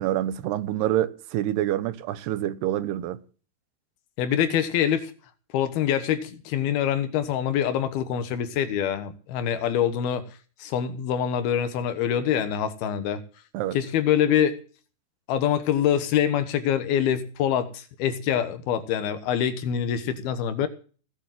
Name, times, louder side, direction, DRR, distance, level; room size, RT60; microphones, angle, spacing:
voice 1, 0.0-3.2 13.5-13.8, right 13 dB, 85° right, 3.1 m, -27 dB
voice 2, 4.2-5.1 5.5-10.3 10.6-13.2 13.7-14.6 15.3-20.7, left 9 dB, 75° left, 3.1 m, -25 dB
18.0 x 7.6 x 7.5 m
omnidirectional pair, 4.6 m